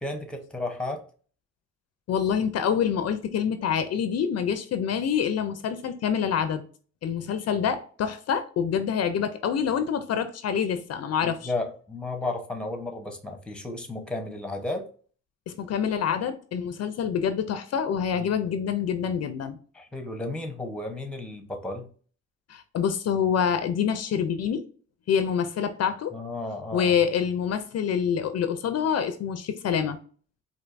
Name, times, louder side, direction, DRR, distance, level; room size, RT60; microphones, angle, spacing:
voice 1, 0.0-1.0 11.2-14.9 18.1-18.3 19.7-21.9 26.1-26.9, left 2 dB, 5° left, 0.8 m, -33 dB
voice 2, 2.1-6.7 7.0-11.5 15.5-19.6 22.5-24.6 25.1-26.1 26.7-30.0, left 7 dB, 55° left, 0.5 m, -26 dB
4.4 x 2.7 x 2.5 m
cardioid pair, 90°, 30 cm